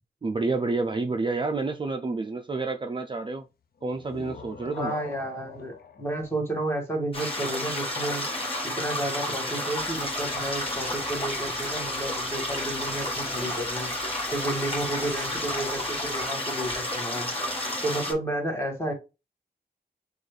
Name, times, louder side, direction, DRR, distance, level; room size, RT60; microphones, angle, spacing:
voice 1, 0.2-3.4 3.8-4.9, right 3 dB, 30° right, 0.4 m, -29 dB
sound 1, 3.8-7.4, left 7 dB, 65° left, 0.5 m, -42 dB
voice 2, 4.8-8.2 8.6-13.9 14.3-17.3 17.8-18.9, right 1 dB, 15° left, 1.6 m, -31 dB
sound 2, 7.1-18.1, left 1 dB, 35° left, 1.5 m, -31 dB
sound 3, 9.7-16.2, right 1 dB, 5° right, 1.6 m, -46 dB
6.3 x 2.4 x 3.2 m
wide cardioid pair, 140°, 17 cm